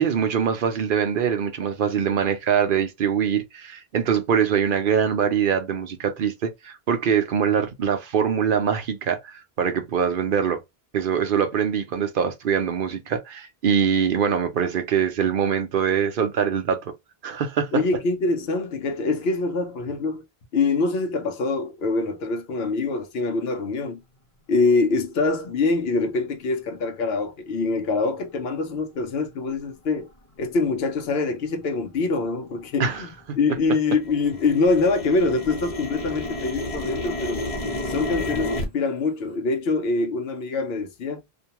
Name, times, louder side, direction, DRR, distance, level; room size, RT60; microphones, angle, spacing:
voice 1, 0.0-10.6 10.9-16.9 17.2-17.7 32.8-33.1, right 7 dB, 60° right, 0.7 m, -23 dB
voice 2, 17.7-20.2 20.5-24.0 24.5-30.1 30.4-33.1 33.4-37.4 37.9-41.2, left 3 dB, 75° left, 0.9 m, -24 dB
sound 1, 27.8-27.9 28.5-28.6 29.3-29.6 30.0-30.1 30.4-30.9 31.2-33.5 33.8-38.6, left 1 dB, 40° left, 0.8 m, -32 dB
2.5 x 2.2 x 2.8 m
omnidirectional pair, 1.0 m